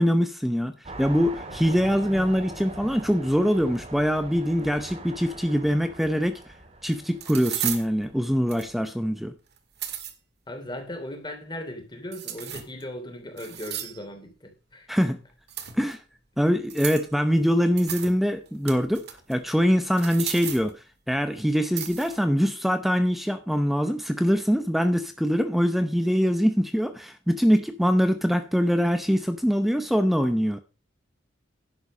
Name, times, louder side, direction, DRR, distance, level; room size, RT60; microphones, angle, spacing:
voice 1, 0.0-6.5 6.8-9.3 14.9-15.2 15.7-16.0 16.4-30.6, equal, ahead, 0.6 m, -23 dB
sound 1, 0.8-8.8, right 2 dB, 35° right, 2.2 m, -42 dB
sound 2, 6.3-6.4 7.2-7.9 8.5-8.9 9.6-10.1 12.1-12.8 13.4-14.0 15.5-15.9 16.7-17.1 17.8-18.1 18.5-19.3 19.9-20.7 21.8-22.2, right 10 dB, 60° right, 1.8 m, -34 dB
voice 2, 10.5-15.0, left 1 dB, 25° left, 3.0 m, -38 dB
11.0 x 7.6 x 5.2 m
head